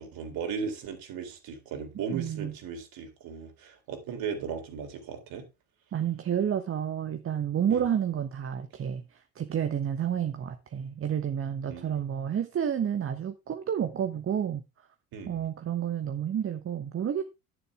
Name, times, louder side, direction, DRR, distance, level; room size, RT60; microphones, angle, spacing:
voice 1, 0.0-5.5 7.7-7.8 11.7-12.0 15.1-15.4, right 6 dB, 50° right, 3.7 m, -37 dB
voice 2, 2.1-2.5 5.9-14.6 15.3-17.2, right 9 dB, 30° right, 1.2 m, -30 dB
11.0 x 9.7 x 3.5 m
figure-of-eight pair, 65°, 44 cm